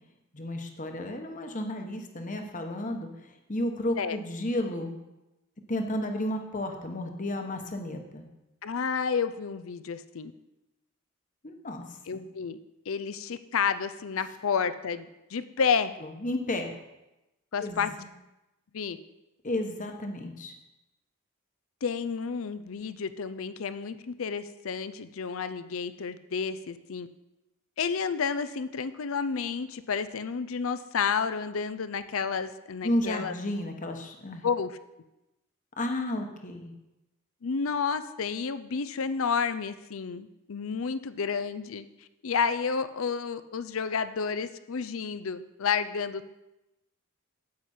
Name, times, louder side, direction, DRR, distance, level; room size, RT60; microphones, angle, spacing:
voice 1, 0.3-4.9 5.7-8.2 11.4-12.2 16.0-16.7 17.6-17.8 19.4-20.5 32.8-34.4 35.8-36.7, left 1 dB, 35° left, 4 dB, 1.1 m, -32 dB
voice 2, 8.6-10.3 12.1-12.6 12.9-16.0 17.5-17.9 18.7-19.0 21.8-27.1 27.8-33.3 34.4-34.8 37.4-41.9 42.2-46.3, left 6 dB, 70° left, 13 dB, 0.5 m, -30 dB
9.5 x 8.4 x 4.4 m, 0.95 s
head